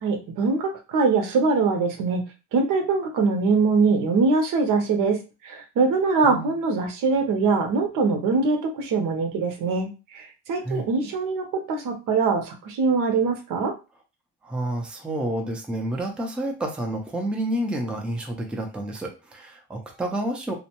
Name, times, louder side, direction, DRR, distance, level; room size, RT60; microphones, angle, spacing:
voice 1, 0.0-2.2 2.5-5.2 5.4-9.9 10.1-13.7, right 4 dB, 75° right, 4 dB, 0.7 m, -23 dB
voice 2, 14.4-20.5, right 1 dB, 5° right, 1 dB, 0.4 m, -29 dB
2.6 x 2.1 x 2.8 m, 0.30 s
cardioid pair, 145°, 32 cm